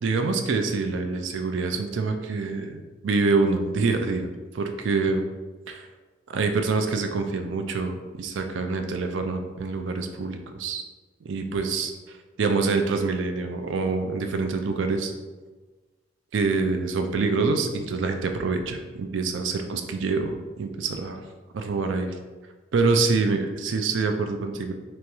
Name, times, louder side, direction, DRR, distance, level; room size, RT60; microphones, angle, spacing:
voice 1, 0.0-4.3 4.5-5.2 5.7-5.9 6.3-10.8 11.2-15.1 16.3-21.2 21.5-22.2 22.7-24.7, right 4 dB, 75° right, 6 dB, 0.4 m, -26 dB
3.5 x 3.0 x 3.0 m, 1.3 s
head